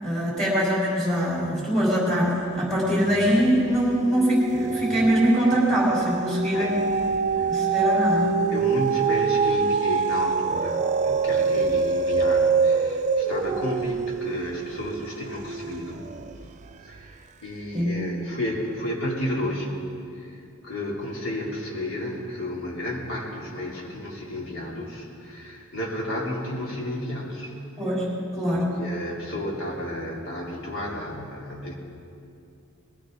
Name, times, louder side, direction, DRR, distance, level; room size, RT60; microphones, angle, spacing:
voice 1, 0.0-6.8 7.5-8.3 17.7-17.9 27.8-28.0 28.3-28.7, equal, ahead, -6 dB, 4.1 m, -23 dB
sound 1, 3.1-3.6 4.0-16.4 17.0-17.1, right 5 dB, 35° right, 0.4 m, -25 dB
voice 2, 8.5-16.1 16.8-19.8 20.2-20.3 20.6-27.6 28.5-31.7, left 1 dB, 80° left, -4 dB, 3.3 m, -32 dB
20.5 x 16.5 x 4.0 m, 2.5 s
head